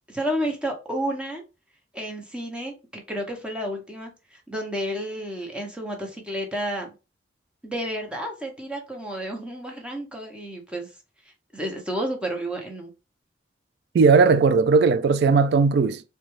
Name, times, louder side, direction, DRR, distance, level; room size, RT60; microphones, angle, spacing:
voice 1, 0.0-1.4 1.9-6.9 7.6-11.0 11.2-12.9, equal, 5° right, 0.8 m, -31 dB
voice 2, 13.9-16.0, right 4 dB, 65° right, 0.3 m, -17 dB
3.9 x 2.3 x 3.1 m
head